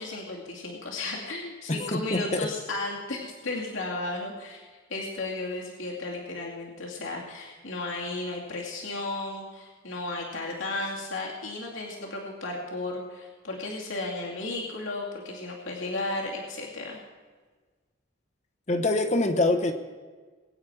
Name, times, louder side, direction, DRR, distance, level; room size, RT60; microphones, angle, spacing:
voice 1, 0.0-17.0, left 2 dB, 85° left, -3 dB, 2.5 m, -34 dB
voice 2, 1.7-2.5 18.7-19.7, left 2 dB, 35° left, 5 dB, 1.0 m, -25 dB
22.0 x 9.2 x 4.8 m, 1.4 s
head